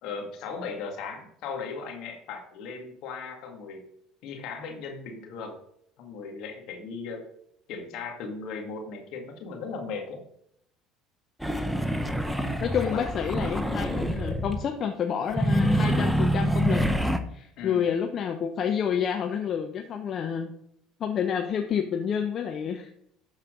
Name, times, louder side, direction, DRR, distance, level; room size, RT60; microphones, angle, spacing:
voice 1, 0.0-3.8 4.2-5.6 6.0-7.3 7.7-10.2 12.8-13.1 13.6-13.8 17.6-17.9, left 4 dB, 65° left, 2 dB, 2.0 m, -37 dB
sound 1, 11.4-14.6 15.3-17.2, equal, 5° right, 0.9 m, -26 dB
voice 2, 12.6-16.8 17.3-20.5 21.0-22.9, left 8 dB, 50° left, 4 dB, 0.9 m, -29 dB
12.5 x 4.4 x 3.8 m, 0.71 s
hypercardioid pair, 75°, 0 cm